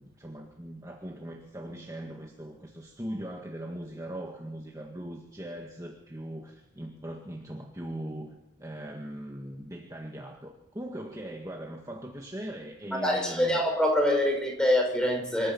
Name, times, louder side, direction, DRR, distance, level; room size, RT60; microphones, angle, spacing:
voice 1, 0.0-13.6, right 1 dB, 15° right, 1 dB, 1.8 m, -40 dB
voice 2, 13.0-15.5, left 1 dB, 5° left, 2 dB, 5.4 m, -25 dB
26.0 x 13.5 x 7.3 m, 0.83 s
head